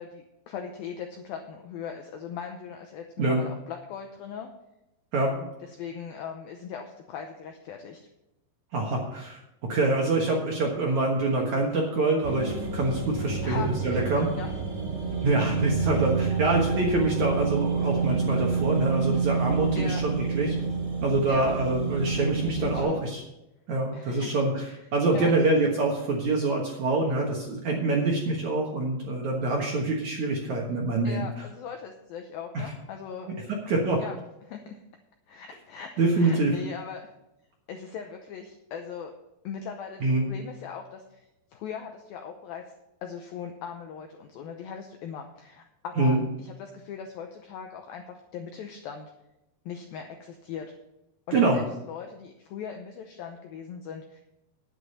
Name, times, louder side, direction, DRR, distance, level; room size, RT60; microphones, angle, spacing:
voice 1, 0.0-4.5 5.2-8.0 13.4-14.5 19.7-20.0 21.3-21.5 22.5-23.0 23.9-24.3 25.1-25.3 31.0-33.5 34.0-34.2 34.4-34.8 35.3-37.1 37.7-39.1 39.4-41.2 41.5-42.6 43.0-49.1 49.7-50.7 51.3-54.2, left 7 dB, 90° left, 4 dB, 2.1 m, -39 dB
voice 2, 8.7-9.4 9.7-14.3 15.2-20.6 21.0-23.2 23.7-24.7 24.9-31.3 32.5-32.7 33.7-34.0 36.0-36.5 40.0-40.3 46.0-46.2 51.3-51.6, right 2 dB, 65° right, -1 dB, 1.9 m, -25 dB
sound 1, 12.2-22.8, right 5 dB, 35° right, 5.9 m, -28 dB
10.0 x 9.0 x 5.5 m, 0.91 s
omnidirectional pair, 5.3 m